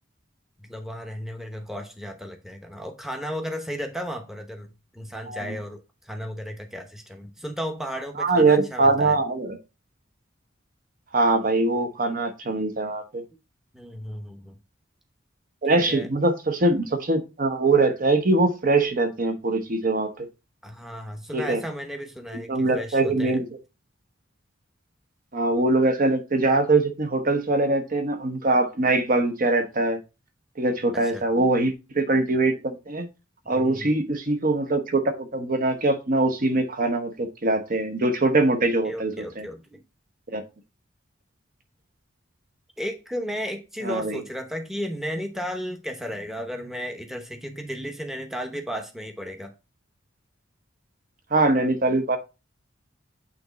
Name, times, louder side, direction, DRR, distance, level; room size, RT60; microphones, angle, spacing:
voice 1, 0.6-9.2 13.7-14.6 15.7-16.1 20.6-23.4 30.9-31.2 33.4-34.0 38.6-39.8 42.8-49.5, equal, ahead, 0.8 m, -34 dB
voice 2, 8.2-9.6 11.1-13.2 15.6-20.3 21.3-21.6 22.3-23.4 25.3-30.0 30.6-33.1 33.5-39.5 40.3-40.4 43.8-44.2 51.3-52.2, right 2 dB, 45° right, 0.9 m, -22 dB
8.6 x 3.0 x 3.9 m
head